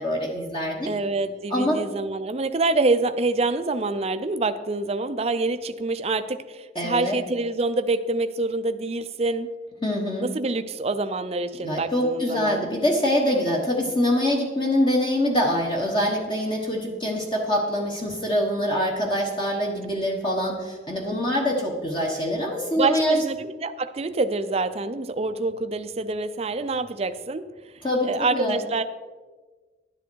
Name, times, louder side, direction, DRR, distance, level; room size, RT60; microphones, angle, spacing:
voice 1, 0.0-0.9 1.5-1.8 6.7-7.2 9.8-10.3 11.6-23.2 27.8-28.6, left 1 dB, 25° left, 0 dB, 1.2 m, -24 dB
voice 2, 0.9-9.5 10.2-12.7 22.8-27.4 28.0-28.8, right 3 dB, 35° right, 10 dB, 0.5 m, -26 dB
11.5 x 10.5 x 4.6 m, 1.4 s
head